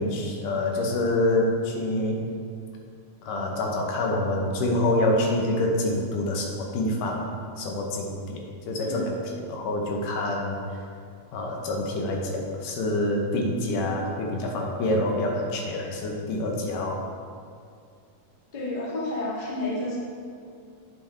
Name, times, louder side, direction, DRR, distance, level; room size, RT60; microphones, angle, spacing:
voice 1, 0.0-2.2 3.2-7.3 7.6-9.2 9.5-10.6 11.3-17.0, left 1 dB, 85° left, 1 dB, 2.5 m, -26 dB
voice 2, 18.5-20.0, left 2 dB, 40° left, -5 dB, 0.6 m, -30 dB
8.7 x 7.4 x 3.4 m, 2.3 s
omnidirectional pair, 3.7 m